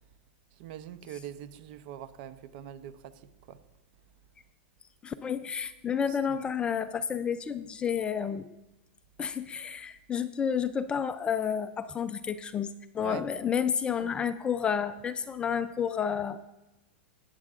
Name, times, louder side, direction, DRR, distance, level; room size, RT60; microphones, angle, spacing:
voice 1, 0.5-3.6 6.1-6.4 13.0-13.3, right 10 dB, 50° right, 13 dB, 0.6 m, -43 dB
voice 2, 5.0-8.5 9.2-16.4, left 7 dB, 15° left, 12 dB, 0.3 m, -30 dB
17.0 x 9.0 x 2.4 m, 0.97 s
supercardioid pair, 145°, 7 cm